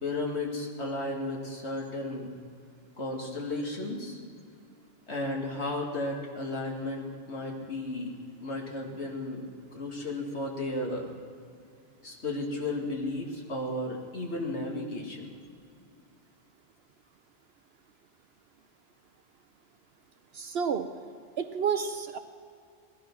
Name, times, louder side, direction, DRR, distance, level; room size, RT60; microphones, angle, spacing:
voice 1, 0.0-2.3 3.0-4.2 5.1-9.5 9.7-11.1 12.0-15.3, left 2 dB, 70° left, 0 dB, 2.5 m, -34 dB
voice 2, 20.3-20.9 21.4-22.2, right 6 dB, 65° right, 9 dB, 0.9 m, -30 dB
18.5 x 12.0 x 6.1 m, 2.3 s
omnidirectional pair, 1.2 m